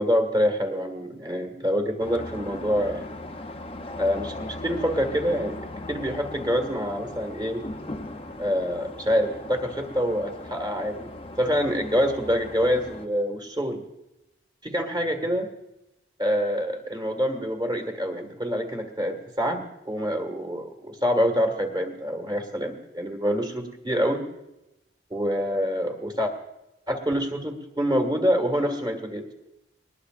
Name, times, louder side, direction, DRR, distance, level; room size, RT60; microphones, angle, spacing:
voice 1, 0.0-3.1 4.0-7.7 8.4-11.1 11.4-13.8 14.6-15.5 16.2-24.2 25.1-26.3 26.9-29.3, equal, 25° right, 3 dB, 1.7 m, -26 dB
sound 1, 2.0-13.1, left 1 dB, 30° left, 0.7 m, -38 dB
20.5 x 19.5 x 2.5 m, 0.92 s
head